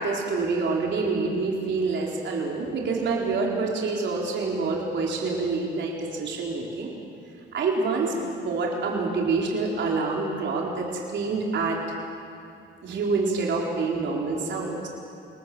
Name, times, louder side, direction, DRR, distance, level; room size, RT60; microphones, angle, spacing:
voice 1, 0.0-6.9 7.5-11.8 12.8-14.9, right 3 dB, 65° right, -2 dB, 4.4 m, -27 dB
26.5 x 19.5 x 7.7 m, 2.6 s
cardioid pair, 90°, 20 cm